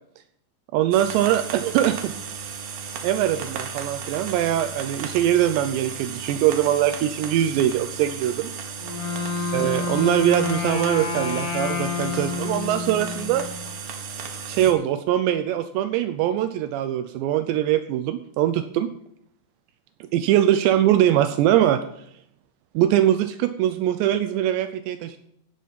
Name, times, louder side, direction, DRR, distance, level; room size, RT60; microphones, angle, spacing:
voice 1, 0.7-2.1 3.0-8.5 9.5-13.5 14.5-18.9 20.0-21.8 22.8-25.2, right 12 dB, 80° right, 11 dB, 2.6 m, -22 dB
sound 1, 0.9-14.7, right 6 dB, 65° right, 2.6 m, -35 dB
Wind instrument woodwind instrument, 8.8-13.7, left 5 dB, 80° left, 4.4 m, -29 dB
16.5 x 5.9 x 5.5 m, 0.70 s
omnidirectional pair, 5.4 m